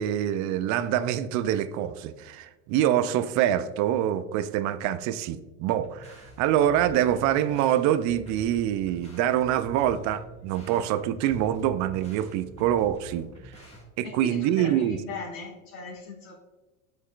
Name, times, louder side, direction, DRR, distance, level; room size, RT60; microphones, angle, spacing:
voice 1, 0.0-13.3 14.0-15.2, right 11 dB, 45° right, 14 dB, 0.5 m, -25 dB
sound 1, 5.7-13.8, equal, 15° left, 1.7 m, -46 dB
voice 2, 14.0-16.4, left 4 dB, 75° left, -5 dB, 1.8 m, -38 dB
8.5 x 5.5 x 2.4 m, 1.1 s
hypercardioid pair, 95°, 44 cm